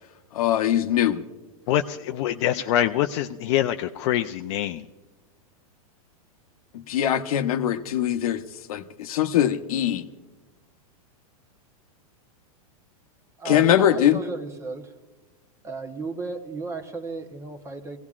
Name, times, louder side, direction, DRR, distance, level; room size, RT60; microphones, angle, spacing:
voice 1, 0.3-1.2 6.7-8.4 8.7-10.0 13.4-14.2, left 11 dB, 70° left, 9 dB, 0.9 m, -22 dB
voice 2, 1.7-4.8, left 12 dB, 50° left, 6 dB, 0.5 m, -25 dB
voice 3, 13.4-14.9 15.6-18.0, right 3 dB, 15° right, 7 dB, 0.9 m, -34 dB
23.0 x 17.0 x 2.4 m, 1.2 s
hypercardioid pair, 140°, 19 cm